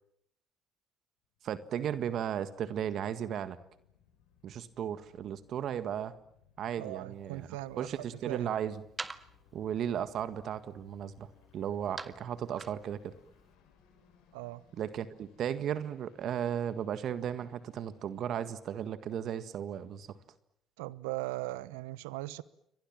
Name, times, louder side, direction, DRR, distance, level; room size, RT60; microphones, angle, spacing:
sound 1, 1.4-20.2, left 8 dB, 80° left, 6.7 m, -66 dB
voice 1, 1.4-3.6 4.4-6.1 6.6-7.5 7.8-8.8 9.5-13.1 14.8-20.2, right 9 dB, 60° right, 1.8 m, -35 dB
voice 2, 6.8-7.9 8.3-8.5 14.3-14.6 20.8-22.4, right 18 dB, 85° right, 1.0 m, -39 dB
sound 2, 7.1-13.6, right 3 dB, 25° right, 1.8 m, -49 dB
29.5 x 24.0 x 7.5 m
hypercardioid pair, 60°, 0 cm